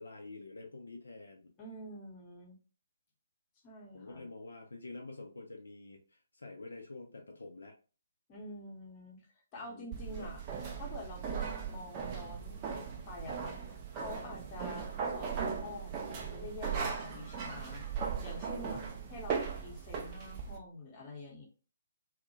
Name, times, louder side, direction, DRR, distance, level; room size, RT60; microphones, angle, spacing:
voice 1, 0.0-1.5 3.9-7.8 9.6-10.4, left 3 dB, 65° left, 2 dB, 0.4 m, -48 dB
voice 2, 1.6-2.6 3.6-4.3 8.3-10.4 10.8-17.8 18.2-18.8 19.1-21.5, left 2 dB, 25° left, -2 dB, 0.8 m, -47 dB
sound 1, 9.9-20.6, right 6 dB, 25° right, 0.4 m, -38 dB
2.1 x 2.0 x 2.9 m, 0.36 s
figure-of-eight pair, 135°, 0 cm